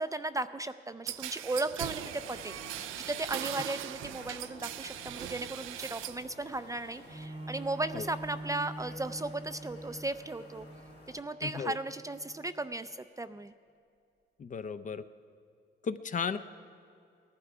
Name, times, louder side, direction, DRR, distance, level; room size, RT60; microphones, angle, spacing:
voice 1, 0.0-2.6 3.1-10.7 11.1-13.5, right 2 dB, 15° right, 11 dB, 0.4 m, -36 dB
sound 1, 1.1-6.3 6.6-7.3, right 13 dB, 90° right, 0.4 m, -40 dB
sound 2, 1.8-11.2, left 3 dB, 55° left, 2.6 m, -53 dB
Bowed string instrument, 7.1-12.7 13.3-13.4, right 1 dB, 35° right, 0.9 m, -45 dB
voice 2, 11.4-11.8 14.4-15.0 15.8-16.4, left 6 dB, 40° left, 11 dB, 0.6 m, -35 dB
18.0 x 11.5 x 4.9 m, 2.4 s
cardioid pair, 90°, 20 cm